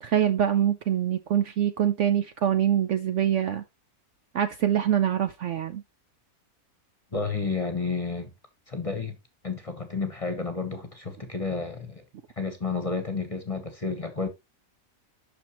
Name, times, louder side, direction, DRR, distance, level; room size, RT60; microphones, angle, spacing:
voice 1, 0.0-3.6 4.3-5.8, right 10 dB, 65° right, 0.8 m, -24 dB
voice 2, 7.1-8.3 8.7-9.2 9.4-12.0 12.4-14.3, left 4 dB, 25° left, 1.1 m, -31 dB
8.4 x 6.2 x 2.9 m
omnidirectional pair, 1.6 m